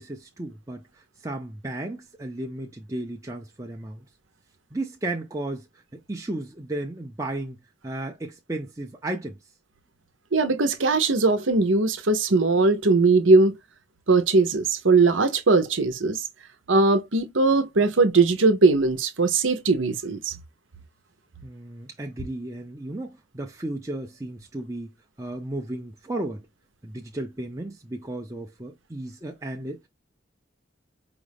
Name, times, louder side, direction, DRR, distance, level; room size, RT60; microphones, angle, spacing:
voice 1, 0.0-4.1 4.7-9.4 21.4-24.9 25.2-26.5 26.8-29.9, right 1 dB, 15° right, 0.6 m, -34 dB
voice 2, 10.3-13.6 14.1-16.2 16.7-20.3, right 3 dB, 90° right, 0.9 m, -20 dB
4.9 x 2.4 x 3.4 m
head